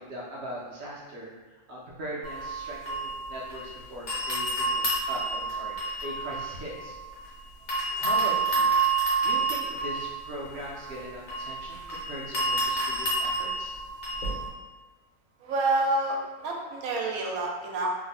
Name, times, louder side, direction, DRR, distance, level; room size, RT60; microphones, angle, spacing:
voice 1, 0.0-7.0 8.0-8.7 9.2-13.7, right 1 dB, 65° right, -3 dB, 0.6 m, -40 dB
sound 1, 2.2-3.7 4.1-7.3 7.7-14.5, right 3 dB, 55° left, 1.1 m, -29 dB
voice 2, 15.4-17.9, right 2 dB, 85° right, 0 dB, 1.1 m, -28 dB
2.8 x 2.0 x 4.0 m, 1.2 s
omnidirectional pair, 1.5 m